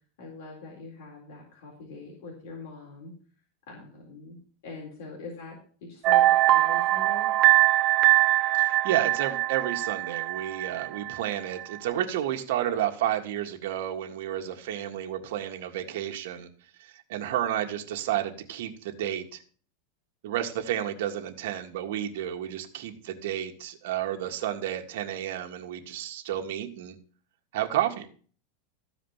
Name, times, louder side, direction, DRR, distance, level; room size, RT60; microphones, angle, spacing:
voice 1, 0.2-3.1 3.7-7.3, left 3 dB, 65° left, -1 dB, 3.9 m, -43 dB
sound 1, 6.0-11.3 11.6-11.8, right 16 dB, 35° right, 1.0 m, -22 dB
voice 2, 8.6-16.5 16.8-19.4 20.2-27.0 27.5-28.1, right 11 dB, 70° right, 4 dB, 1.8 m, -31 dB
14.0 x 5.0 x 7.2 m, 0.44 s
supercardioid pair, 150°, 0 cm